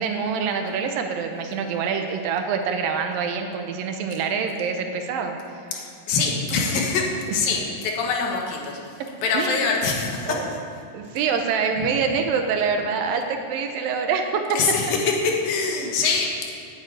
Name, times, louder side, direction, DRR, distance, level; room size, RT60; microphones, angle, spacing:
voice 1, 0.0-5.6 9.3-9.8 10.3-10.5 10.9-14.6, right 6 dB, 85° right, 5 dB, 2.6 m, -25 dB
voice 2, 5.7-8.8 9.2-10.4 14.6-16.5, left 4 dB, 85° left, 0 dB, 3.2 m, -24 dB
9.3 x 7.5 x 8.8 m, 2.5 s
omnidirectional pair, 4.0 m